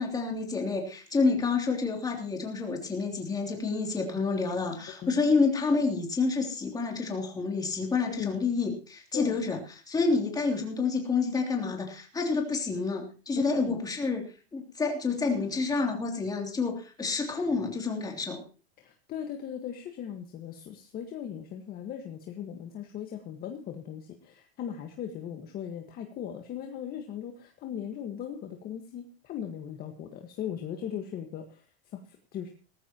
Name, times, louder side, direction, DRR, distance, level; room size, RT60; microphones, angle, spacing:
voice 1, 0.0-14.2 14.5-18.4, left 4 dB, 10° left, 1 dB, 3.1 m, -28 dB
voice 2, 4.9-5.2 8.1-8.4 9.1-9.4 13.4-13.8 18.8-31.6 31.9-32.5, left 9 dB, 30° left, 3 dB, 1.7 m, -38 dB
18.5 x 14.5 x 3.0 m, 0.36 s
supercardioid pair, 145°, 32 cm